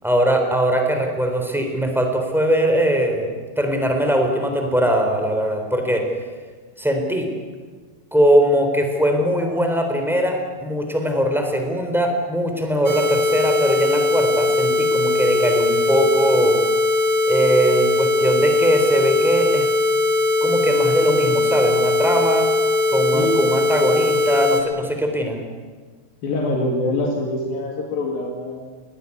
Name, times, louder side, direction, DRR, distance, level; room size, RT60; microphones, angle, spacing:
voice 1, 0.0-3.3 3.6-6.1 6.8-7.3 8.1-16.6 17.2-19.7 20.4-22.5 22.9-25.4, equal, ahead, 3 dB, 3.1 m, -20 dB
sound 1, 12.8-24.6, left 3 dB, 35° right, 1.5 m, -20 dB
voice 2, 26.2-28.7, left 1 dB, 70° left, 0 dB, 4.1 m, -24 dB
21.0 x 18.5 x 9.8 m, 1.4 s
omnidirectional pair, 4.4 m